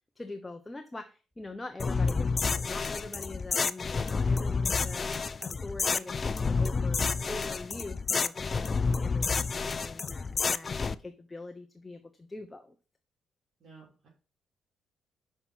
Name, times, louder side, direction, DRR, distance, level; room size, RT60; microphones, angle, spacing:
voice 1, 0.2-5.1 5.4-12.8, left 2 dB, 15° left, 6 dB, 0.8 m, -44 dB
sound 1, 1.8-10.9, left 4 dB, 35° left, 0.4 m, -29 dB
voice 2, 13.6-14.1, right 4 dB, 55° right, -6 dB, 3.6 m, -54 dB
5.7 x 5.7 x 6.0 m, 0.34 s
cardioid pair, 90°, 0 cm